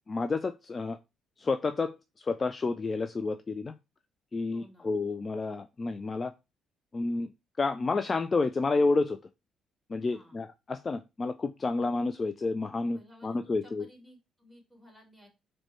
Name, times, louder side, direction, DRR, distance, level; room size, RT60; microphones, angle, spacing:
voice 1, 0.1-1.0 1.4-3.8 4.3-6.3 6.9-7.3 7.6-9.2 9.9-13.8, left 3 dB, 35° left, 9 dB, 0.3 m, -30 dB
voice 2, 4.5-4.9 10.1-10.4 12.9-15.3, left 1 dB, 5° left, 0 dB, 2.4 m, -56 dB
4.3 x 2.2 x 4.3 m, 0.25 s
hypercardioid pair, 50°, 0 cm